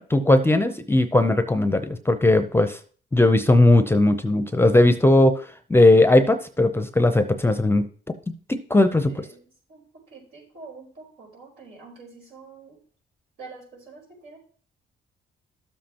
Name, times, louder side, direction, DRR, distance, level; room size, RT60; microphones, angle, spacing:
voice 1, 0.0-2.8 3.1-5.4 5.7-7.9 8.5-9.3, left 2 dB, 10° left, 9 dB, 0.6 m, -18 dB
voice 2, 9.0-12.8 13.4-14.4, right 4 dB, 85° right, -2 dB, 4.5 m, -46 dB
12.0 x 7.5 x 2.9 m, 0.44 s
cardioid pair, 90°, 20 cm